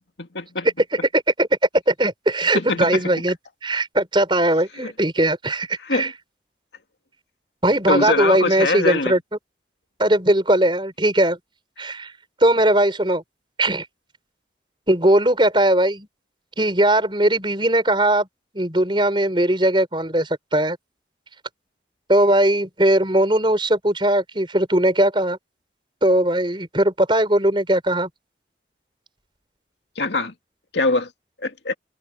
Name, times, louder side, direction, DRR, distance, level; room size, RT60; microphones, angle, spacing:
voice 1, 0.2-0.7 2.5-3.0 4.8-4.9 5.8-6.1 7.9-9.1 30.0-30.3 30.7-31.1 31.4-31.7, left 3 dB, 80° left, 2.2 m, -23 dB
voice 2, 1.1-1.5 1.9-3.4 3.6-6.1 7.6-9.2 10.0-11.4 11.8-12.1 12.4-13.2 13.6-13.8 14.9-16.1 16.6-18.3 18.5-20.8 22.1-25.4 26.0-28.1, right 1 dB, 25° right, 5.1 m, -19 dB
head